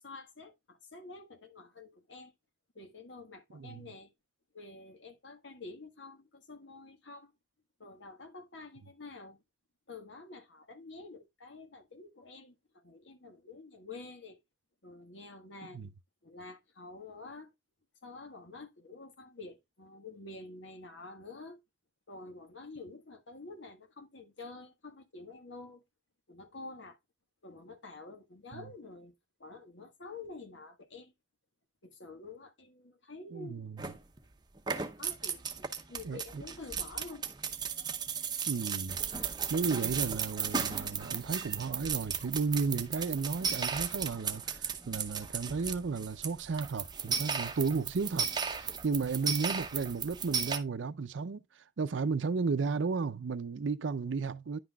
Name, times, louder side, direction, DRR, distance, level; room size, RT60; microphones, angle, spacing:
voice 1, 0.0-2.3 2.7-4.1 4.5-7.3 7.8-9.4 9.9-14.4 14.8-15.9 16.2-17.5 18.0-21.6 22.1-25.8 26.3-27.0 27.4-29.1 29.4-31.1 31.8-33.7 34.7-37.2, left 3 dB, 80° left, 1.6 m, -48 dB
voice 2, 3.5-3.9 15.7-15.9 28.5-28.6 33.3-33.7 36.0-36.4 38.5-39.0 39.5-48.3 48.5-54.6, right 4 dB, 80° right, 0.5 m, -34 dB
sound 1, 33.8-34.2 34.6-50.6, right 6 dB, 20° right, 0.7 m, -35 dB
10.5 x 5.8 x 2.3 m
head